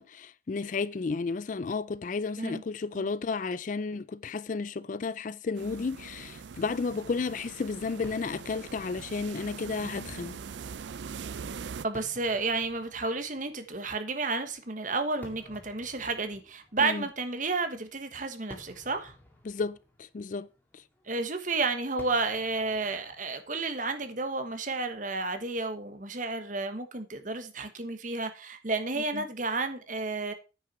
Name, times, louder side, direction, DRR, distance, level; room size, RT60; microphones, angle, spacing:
voice 1, 0.0-10.4 16.8-17.0 19.4-20.8 28.9-29.2, left 4 dB, 40° left, 0.4 m, -33 dB
sound 1, 5.5-11.9, right 6 dB, 70° right, 0.4 m, -42 dB
Fireworks, 8.0-25.4, left 1 dB, 10° left, 2.1 m, -55 dB
voice 2, 11.8-19.1 21.1-30.3, right 3 dB, 45° right, 1.3 m, -31 dB
9.5 x 5.9 x 5.9 m
head